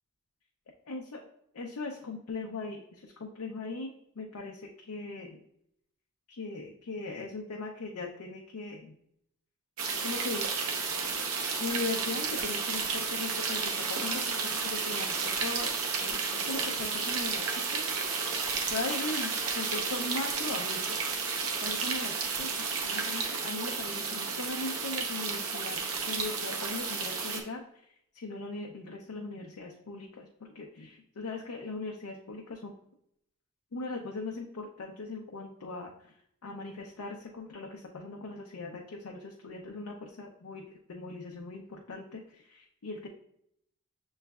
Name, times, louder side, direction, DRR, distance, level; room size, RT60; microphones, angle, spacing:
voice 1, 0.9-1.2 1.5-5.4 6.3-8.9 10.0-10.5 11.6-17.9 18.7-21.0 21.6-25.8 26.1-27.6 28.1-32.7 33.7-35.9 36.4-40.6 40.9-43.1, left 3 dB, 85° left, 0 dB, 0.5 m, -39 dB
sound 1, 9.8-27.4, right 5 dB, 80° right, 0.7 m, -32 dB
6.7 x 3.1 x 2.3 m, 0.73 s
head